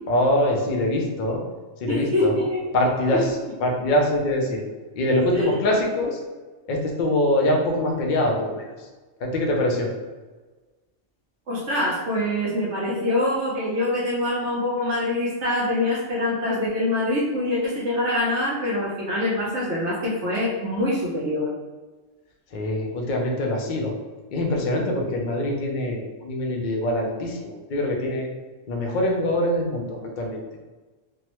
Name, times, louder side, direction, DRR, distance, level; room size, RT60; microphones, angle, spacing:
voice 1, 0.1-1.4 1.8-2.3 2.7-3.3 3.6-4.6 5.0-6.2 6.7-8.6 9.2-9.9 22.5-23.9 24.3-28.3 28.7-30.4, left 1 dB, 55° left, 0 dB, 0.6 m, -23 dB
voice 2, 1.9-2.6 5.3-5.5 11.5-21.5, left 1 dB, 65° right, -5 dB, 1.0 m, -24 dB
3.4 x 2.1 x 2.9 m, 1.3 s
omnidirectional pair, 1.3 m